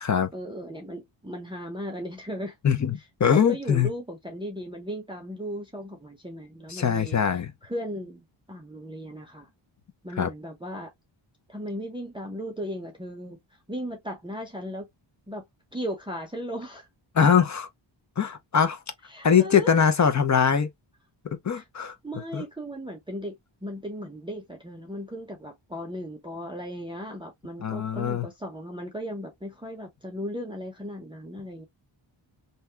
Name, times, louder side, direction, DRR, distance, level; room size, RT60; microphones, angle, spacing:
voice 1, 0.3-2.6 3.3-9.5 10.0-10.9 11.5-13.4 13.7-14.9 15.3-15.4 15.7-16.9 19.1-19.9 21.5-21.6 22.0-31.7, equal, 10° right, 0.6 m, -36 dB
voice 2, 2.6-3.9 6.7-7.5 10.2-10.3 17.2-17.7 18.2-18.8 19.2-20.7 21.4-21.9 22.3-22.4 27.6-28.3, left 7 dB, 40° left, 0.5 m, -22 dB
2.7 x 2.2 x 3.2 m
wide cardioid pair, 145°, 48 cm